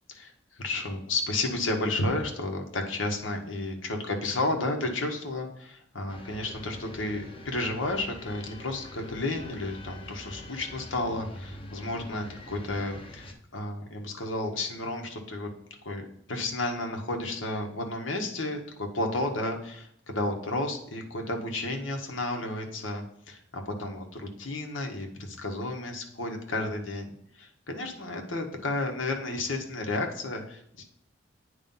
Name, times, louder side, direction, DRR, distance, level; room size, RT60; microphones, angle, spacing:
voice 1, 0.1-15.5 15.8-30.8, left 2 dB, 85° left, 3 dB, 1.2 m, -32 dB
sound 1, 6.1-13.3, left 1 dB, 30° left, 0.9 m, -44 dB
9.1 x 3.2 x 5.5 m, 0.70 s
head